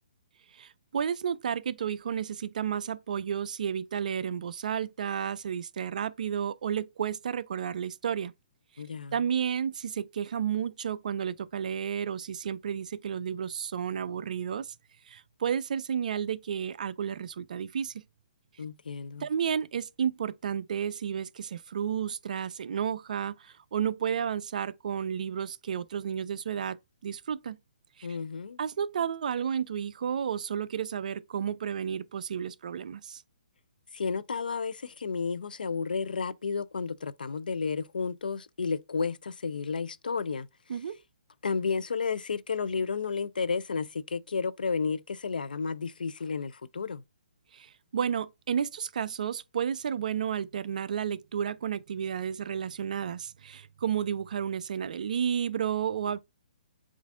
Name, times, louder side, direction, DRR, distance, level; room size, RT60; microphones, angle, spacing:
voice 1, 0.5-8.3 9.1-14.7 15.1-17.9 19.2-26.8 27.0-27.6 28.0-28.1 28.6-33.2 40.7-41.0 47.5-56.2, right 8 dB, 60° right, 0.3 m, -32 dB
voice 2, 8.8-9.2 18.6-19.3 28.0-28.6 33.9-40.5 41.4-47.0, left 5 dB, 75° left, 0.4 m, -32 dB
7.1 x 2.5 x 2.4 m
figure-of-eight pair, 135°, 5 cm